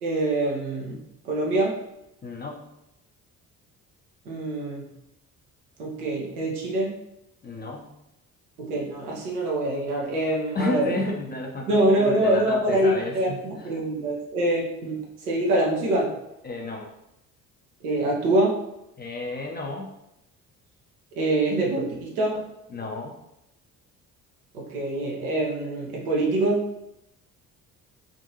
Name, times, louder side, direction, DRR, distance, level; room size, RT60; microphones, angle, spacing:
voice 1, 0.0-1.8 4.3-4.8 5.8-6.9 8.6-10.9 11.7-15.0 15.3-16.1 17.8-18.6 21.2-22.4 24.5-26.6, right 1 dB, 75° right, -2 dB, 0.9 m, -25 dB
voice 2, 2.2-2.7 7.4-7.9 10.5-13.7 16.4-16.9 19.0-19.9 22.7-23.2, left 2 dB, 20° left, 0 dB, 0.6 m, -32 dB
3.7 x 2.5 x 2.8 m, 0.86 s
figure-of-eight pair, 50°, 44 cm